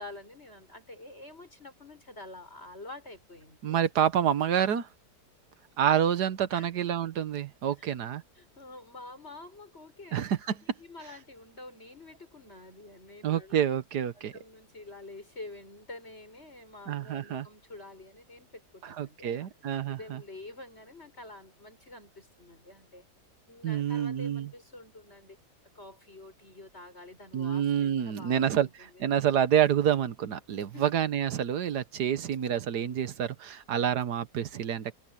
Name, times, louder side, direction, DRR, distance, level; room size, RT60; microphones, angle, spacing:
voice 1, 0.0-3.8 6.5-6.7 7.8-7.9 8.4-13.7 14.2-19.5 19.9-23.1 23.5-25.4 25.7-29.0 30.7-31.0, left 2 dB, 40° left, 7.5 m, -48 dB
voice 2, 3.6-4.9 5.8-8.2 10.1-10.4 13.2-14.3 16.9-17.5 18.8-20.2 23.6-24.5 27.3-28.7 29.0-34.9, right 9 dB, 85° right, 1.6 m, -28 dB
open air
omnidirectional pair, 1.7 m